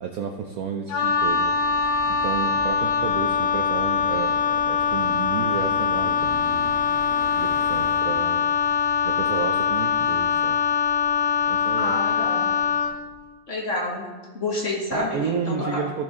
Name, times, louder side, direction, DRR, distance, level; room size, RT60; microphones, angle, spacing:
voice 1, 0.0-1.5 2.1-6.7 7.4-8.4 9.0-10.6 11.5-12.0 14.9-16.0, right 6 dB, 65° right, 4 dB, 0.9 m, -31 dB
Wind instrument woodwind instrument, 0.9-13.0, left 6 dB, 70° left, 1.5 m, -23 dB
sound 1, 1.2-8.0, right 1 dB, 50° right, 1.5 m, -42 dB
voice 2, 11.8-12.5 13.5-14.1 14.3-15.9, left 2 dB, 40° left, -3 dB, 2.1 m, -29 dB
14.5 x 6.2 x 3.7 m, 1.4 s
omnidirectional pair, 2.1 m